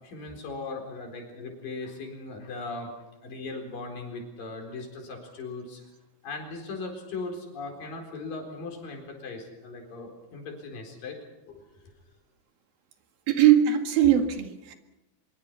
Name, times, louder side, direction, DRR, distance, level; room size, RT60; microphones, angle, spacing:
voice 1, 0.0-5.8 6.2-11.2 11.5-11.9, left 3 dB, 70° left, 3 dB, 5.9 m, -38 dB
voice 2, 13.3-14.7, right 10 dB, 80° right, 5 dB, 3.8 m, -20 dB
24.5 x 23.5 x 5.7 m, 0.98 s
omnidirectional pair, 4.1 m